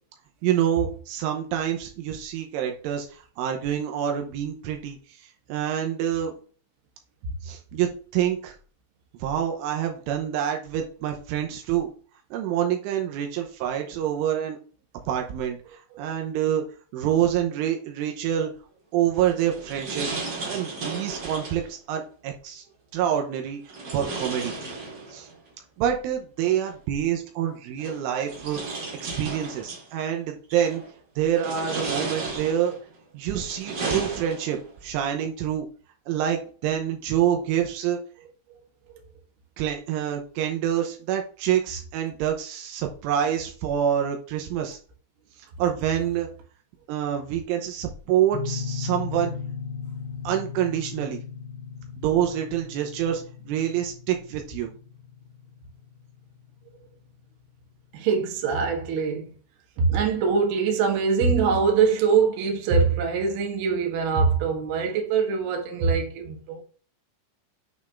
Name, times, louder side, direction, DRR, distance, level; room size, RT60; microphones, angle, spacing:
voice 1, 0.4-6.3 7.4-8.6 9.2-11.9 12.3-14.6 15.1-16.6 16.9-18.5 18.9-20.1 20.5-22.6 22.9-24.5 25.1-25.3 25.8-28.6 29.0-30.8 31.2-32.7 33.1-35.7 36.1-38.0 39.6-44.8 45.6-46.3 46.9-49.3 50.2-51.2 52.0-54.7, right 10 dB, 85° right, 3.3 m, -27 dB
sound 1, 19.1-21.7 23.7-25.3 26.7-26.8 27.8-29.9 30.5-30.9 31.3-32.8 33.3-34.7, right 3 dB, 50° right, 2.0 m, -34 dB
sound 2, 48.3-57.0, left 6 dB, 75° left, 3.2 m, -37 dB
voice 2, 57.9-59.3 59.8-66.6, right 5 dB, 65° right, 2.9 m, -23 dB
8.8 x 3.6 x 3.6 m
omnidirectional pair, 5.7 m